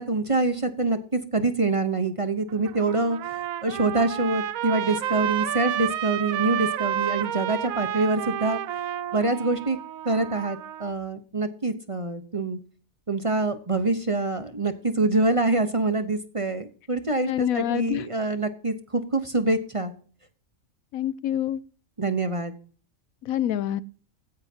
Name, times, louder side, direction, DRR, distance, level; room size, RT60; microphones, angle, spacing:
voice 1, 0.0-8.6 9.1-9.8 10.0-12.6 13.1-19.9 22.0-22.5, right 3 dB, 25° right, 0.9 m, -25 dB
Trumpet, 2.5-10.9, right 11 dB, 90° right, 1.1 m, -30 dB
voice 2, 17.3-18.0 20.9-21.6 23.2-23.8, left 11 dB, 90° left, 1.1 m, -26 dB
15.5 x 10.5 x 2.8 m
omnidirectional pair, 1.4 m